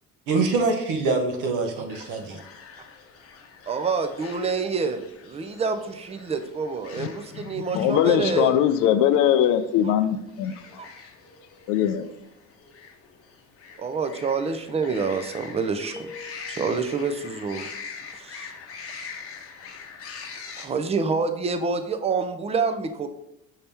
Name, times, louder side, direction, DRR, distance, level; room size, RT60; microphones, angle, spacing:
voice 1, 0.3-2.4, right 3 dB, 75° right, 0.9 m, -24 dB
sound 1, 1.9-20.7, left 5 dB, 45° left, 0.8 m, -44 dB
voice 2, 3.7-8.6 10.8-10.9 13.8-15.9 16.5-17.6 18.2-18.5 20.6-23.1, right 4 dB, 20° right, 0.4 m, -27 dB
voice 3, 7.5-10.5 11.7-12.1, left 10 dB, 80° left, 0.5 m, -21 dB
sound 2, 15.9-17.1, left 3 dB, 10° left, 1.1 m, -44 dB
5.6 x 2.8 x 3.4 m
cardioid pair, 105°, 31 cm